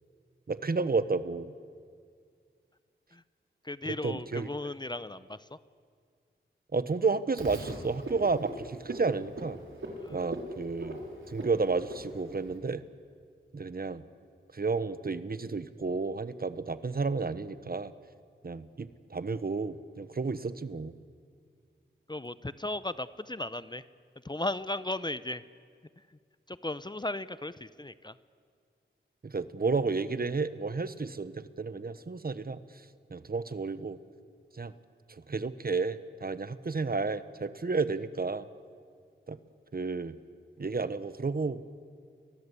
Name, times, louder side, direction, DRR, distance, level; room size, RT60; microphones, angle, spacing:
voice 1, 0.5-1.5 3.9-4.5 6.7-9.6 10.1-11.0 11.3-12.8 13.5-14.0 14.5-17.9 18.4-20.9 29.2-32.6 33.1-34.0 34.6-34.7 35.3-38.5 39.3-39.4 39.7-40.1 40.6-41.6, right 4 dB, 50° right, 13 dB, 1.1 m, -31 dB
voice 2, 3.6-5.6 10.0-10.3 22.1-23.8 24.2-25.4 26.5-28.2, left 2 dB, 20° left, 14 dB, 0.7 m, -36 dB
Frog, 7.4-12.6, right 1 dB, 75° right, 4.9 m, -41 dB
30.0 x 23.5 x 8.3 m, 2.1 s
wide cardioid pair, 85°, 20 cm